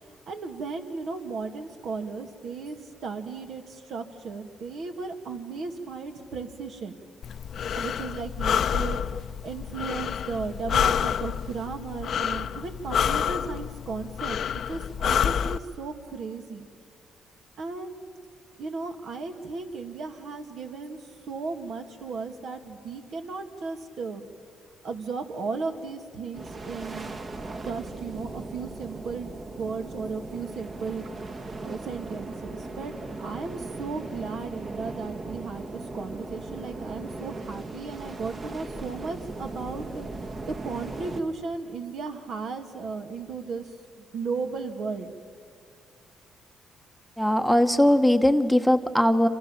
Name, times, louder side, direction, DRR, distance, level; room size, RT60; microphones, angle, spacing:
voice 1, 0.3-7.0 7.8-14.4 14.7-16.7 17.6-18.1 18.6-21.0 21.3-24.3 24.8-27.2 27.7-32.9 33.2-43.7 44.0-45.1, right 4 dB, 65° right, 5 dB, 2.4 m, -35 dB
Breathing, 7.2-15.6, left 8 dB, 60° left, 0.7 m, -28 dB
sound 1, 26.3-41.2, right 2 dB, 40° right, 1.9 m, -38 dB
voice 2, 47.2-49.3, left 1 dB, ahead, 9 dB, 1.1 m, -20 dB
27.0 x 27.0 x 7.4 m, 2.4 s
cardioid pair, 90°, 0 cm